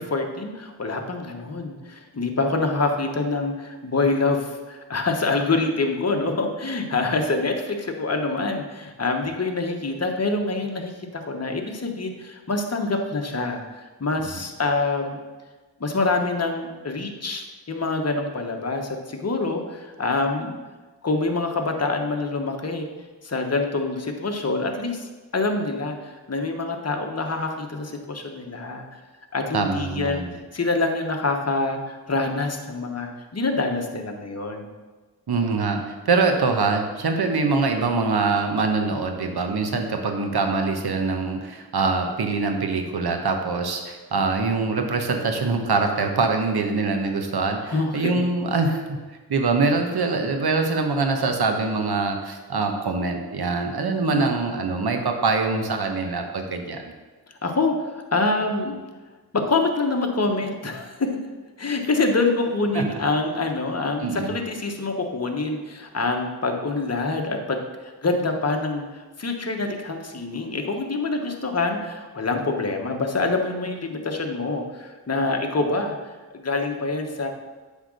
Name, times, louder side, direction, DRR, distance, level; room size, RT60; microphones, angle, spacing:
voice 1, 0.0-15.2 15.8-20.5 21.0-22.9 23.2-29.0 29.3-30.2 30.5-34.7 47.7-48.1 54.0-54.4 57.4-58.8 59.3-61.1 61.6-67.6 67.8-77.3, left 3 dB, 40° left, 3 dB, 1.1 m, -26 dB
voice 2, 29.5-30.3 35.3-49.0 49.3-56.8 62.7-63.0 64.0-64.4, right 4 dB, 65° right, 4 dB, 1.1 m, -24 dB
7.8 x 3.7 x 6.3 m, 1.3 s
cardioid pair, 60°, 40 cm